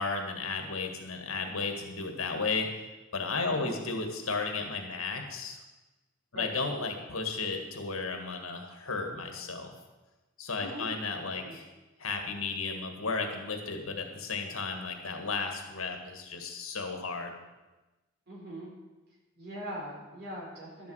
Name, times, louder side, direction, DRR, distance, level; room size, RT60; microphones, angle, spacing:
voice 1, 0.0-2.7 3.1-5.6 6.3-9.7 10.4-11.6 12.0-17.3, left 4 dB, 80° left, 4 dB, 1.9 m, -34 dB
voice 2, 3.5-3.8 6.3-6.6 10.6-10.9 11.3-11.5 18.3-18.7 19.3-20.9, equal, 50° right, -3 dB, 4.3 m, -41 dB
12.0 x 7.2 x 7.9 m, 1.1 s
head